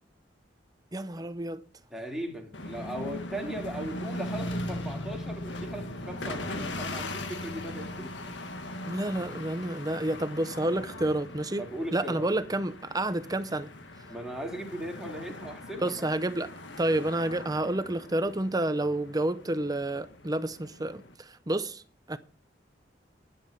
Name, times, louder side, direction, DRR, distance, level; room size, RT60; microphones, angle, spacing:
voice 1, 0.9-1.6 8.8-11.7 11.9-13.7 15.8-16.5 16.8-21.8 22.1-22.2, right 1 dB, 20° right, 0.7 m, -29 dB
voice 2, 1.9-8.3 11.6-12.3 14.1-16.0, right 1 dB, ahead, 3.2 m, -38 dB
sound 1, 2.5-21.1, left 1 dB, 80° left, 1.8 m, -39 dB
11.0 x 9.6 x 6.6 m
head